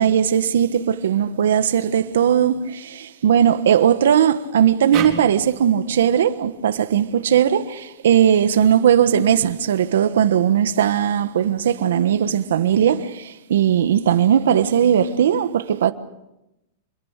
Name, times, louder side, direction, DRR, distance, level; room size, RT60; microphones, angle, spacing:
voice 1, 0.0-15.9, right 9 dB, 85° right, 1.4 m, -18 dB
sound 1, 4.9-8.2, right 7 dB, 30° right, 4.4 m, -34 dB
26.5 x 22.5 x 6.7 m
supercardioid pair, 150°, 0 cm